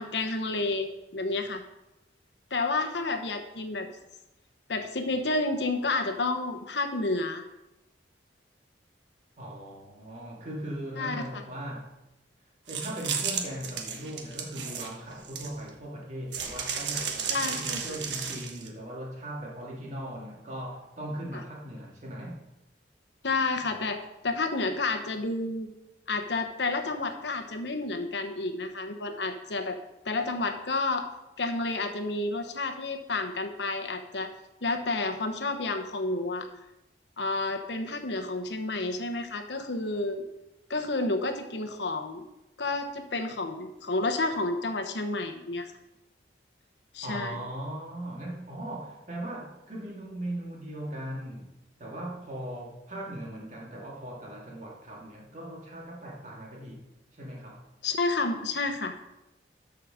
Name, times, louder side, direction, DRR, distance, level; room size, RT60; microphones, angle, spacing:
voice 1, 0.0-1.6 2.5-3.9 4.7-7.4 11.0-11.4 17.3-18.0 23.2-25.7 26.1-29.8 30.0-31.1 31.4-34.3 34.6-36.5 37.2-40.2 40.7-42.2 42.6-45.7 46.9-47.4 57.8-59.0, left 3 dB, 75° left, 6 dB, 1.0 m, -30 dB
voice 2, 9.4-12.0 12.7-22.4 47.0-56.9 57.1-57.7, right 1 dB, 40° right, -2 dB, 2.4 m, -39 dB
sound 1, 12.7-15.7 16.3-18.7, right 6 dB, 85° right, 1.2 m, -33 dB
13.0 x 5.0 x 5.0 m, 0.93 s
head